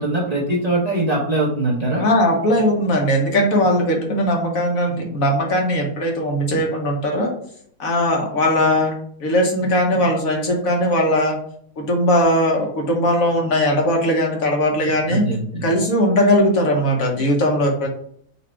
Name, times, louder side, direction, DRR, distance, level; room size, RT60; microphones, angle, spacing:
voice 1, 0.0-2.0 15.1-15.7, right 2 dB, 30° right, -4 dB, 0.8 m, -22 dB
voice 2, 1.9-7.3 7.8-8.9 9.2-11.4 11.8-15.2 15.6-17.9, equal, 65° left, 1 dB, 1.3 m, -19 dB
4.1 x 2.6 x 4.4 m, 0.63 s
omnidirectional pair, 1.7 m